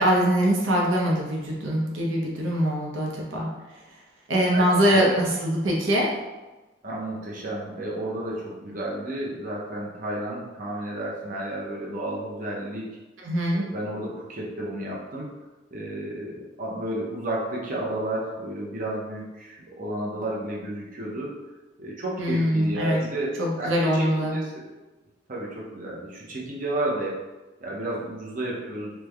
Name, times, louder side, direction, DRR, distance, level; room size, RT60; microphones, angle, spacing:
voice 1, 0.0-3.5 4.3-6.1 13.2-13.7 22.2-23.0 23.4-24.4, equal, 80° right, -2 dB, 0.6 m, -23 dB
voice 2, 4.5-5.2 6.8-12.9 13.5-15.3 15.7-21.3 21.8-24.7 25.3-27.2 27.6-28.9, right 1 dB, 45° right, -4 dB, 0.7 m, -32 dB
3.2 x 2.1 x 3.4 m, 1.1 s
head